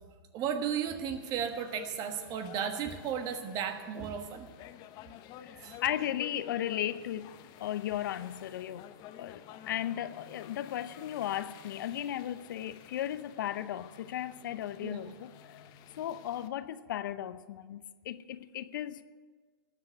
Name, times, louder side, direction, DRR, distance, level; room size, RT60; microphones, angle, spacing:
voice 1, 0.3-4.5 5.6-5.8 14.8-15.0, right 8 dB, 30° right, 1.4 m, -34 dB
sound 1, 1.1-16.5, left 10 dB, 35° left, 1.0 m, -51 dB
voice 2, 5.4-7.3 7.6-8.9 9.2-15.7 16.0-19.0, left 11 dB, 55° left, 0.7 m, -36 dB
19.0 x 7.4 x 7.9 m
hypercardioid pair, 120°, 12 cm